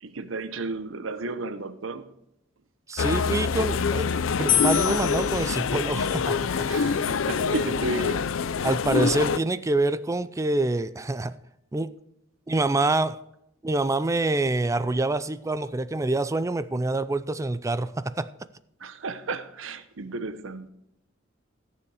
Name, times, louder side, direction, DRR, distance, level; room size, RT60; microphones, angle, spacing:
voice 1, 0.0-2.1 6.7-8.3 18.8-20.7, right 2 dB, 80° right, 0.8 m, -33 dB
voice 2, 2.9-4.1 4.4-6.5 8.6-11.4 11.7-12.0 12.5-13.2 13.6-18.3, right 2 dB, 15° right, 0.4 m, -26 dB
sound 1, 3.0-9.4, left 5 dB, 80° left, 0.5 m, -26 dB
sound 2, 4.5-7.7, left 11 dB, 45° left, 0.8 m, -30 dB
14.0 x 7.1 x 4.8 m
head